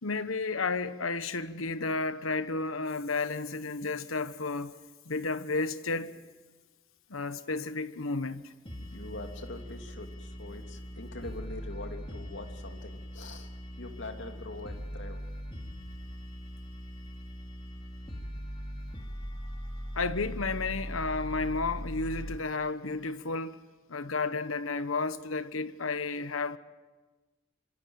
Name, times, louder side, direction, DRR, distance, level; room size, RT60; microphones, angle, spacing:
voice 1, 0.0-4.8 5.0-6.2 7.1-8.5 19.9-23.6 23.9-26.6, left 3 dB, 90° left, 1.3 m, -32 dB
sound 1, 8.7-22.4, equal, 25° left, 2.8 m, -40 dB
voice 2, 8.9-13.5 13.8-15.2, left 2 dB, 65° left, 2.9 m, -43 dB
26.0 x 25.5 x 8.9 m
head